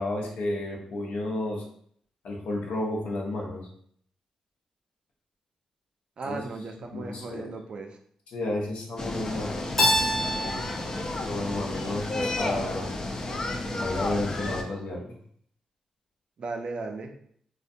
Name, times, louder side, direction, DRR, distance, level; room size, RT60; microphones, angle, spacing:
voice 1, 0.0-1.6 2.2-3.7 6.2-6.4 6.9-7.6 8.3-9.8 11.2-12.9 13.8-15.0, left 2 dB, 80° left, -1 dB, 0.6 m, -32 dB
voice 2, 6.2-8.0 16.4-17.2, right 3 dB, 55° right, 4 dB, 0.4 m, -36 dB
sound 1, 9.0-14.6, left 2 dB, 35° left, 0.4 m, -32 dB
Keyboard (musical), 9.8-12.6, equal, 10° left, 0.8 m, -28 dB
2.5 x 2.1 x 2.5 m, 0.64 s
cardioid pair, 85°, 2 cm